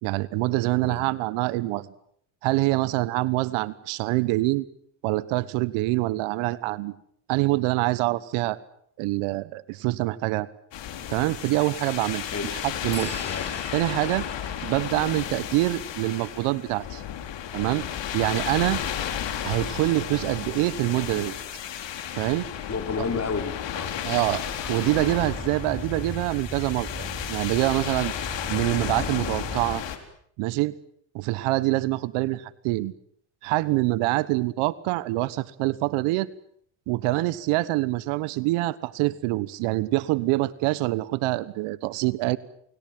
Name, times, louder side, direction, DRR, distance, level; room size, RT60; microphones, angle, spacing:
voice 1, 0.0-1.9 2.4-4.6 5.0-7.0 7.3-8.6 9.0-10.5 11.1-12.2 12.5-13.1 13.7-14.3 14.6-17.0 17.5-17.9 18.1-18.8 19.4-21.4 22.2-22.5 23.0-23.1 24.0-24.4 24.7-28.1 28.5-29.8 30.4-30.7 31.1-32.9 33.4-36.3 36.9-42.4, right 19 dB, 75° right, 19 dB, 1.3 m, -25 dB
sound 1, 10.7-30.0, left 10 dB, 60° left, 4.0 m, -33 dB
sound 2, 12.9-16.5, right 7 dB, 50° right, 6.9 m, -46 dB
voice 2, 13.2-13.7 22.7-24.0, left 5 dB, 30° left, 7 dB, 4.7 m, -31 dB
Car / Engine starting, 24.3-29.7, right 1 dB, ahead, 4.8 m, -38 dB
29.0 x 22.0 x 7.7 m, 0.66 s
supercardioid pair, 75°, 50 cm